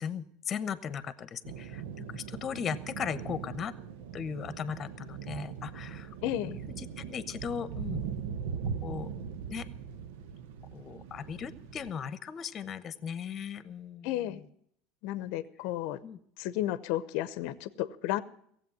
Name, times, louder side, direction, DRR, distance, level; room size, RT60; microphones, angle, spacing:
voice 1, 0.0-3.7 4.1-6.1 6.4-8.0 8.8-9.1 9.5-9.7 10.7-14.1 16.0-16.2, left 7 dB, 35° left, 14 dB, 1.0 m, -37 dB
sound 1, 1.4-11.9, right 7 dB, 75° right, 0.9 m, -40 dB
voice 2, 6.2-6.6 14.0-14.4 15.0-16.0 16.4-18.2, left 14 dB, 65° left, 15 dB, 0.7 m, -32 dB
16.5 x 7.9 x 9.1 m, 0.67 s
hypercardioid pair, 95°, 0 cm